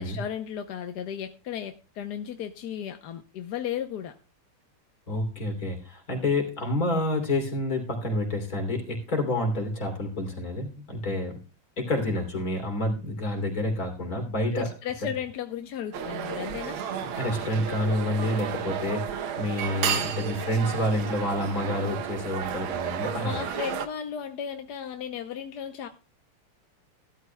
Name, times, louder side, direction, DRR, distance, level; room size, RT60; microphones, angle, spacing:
voice 1, 0.0-4.2 14.5-16.8 23.2-25.9, left 9 dB, 60° left, 6 dB, 1.2 m, -35 dB
voice 2, 5.1-11.4 11.8-14.7 17.2-23.4, left 1 dB, 40° left, 2 dB, 3.5 m, -28 dB
sound 1, 15.9-23.9, right 8 dB, 70° right, 1.7 m, -32 dB
15.5 x 12.5 x 2.3 m, 0.34 s
omnidirectional pair, 2.4 m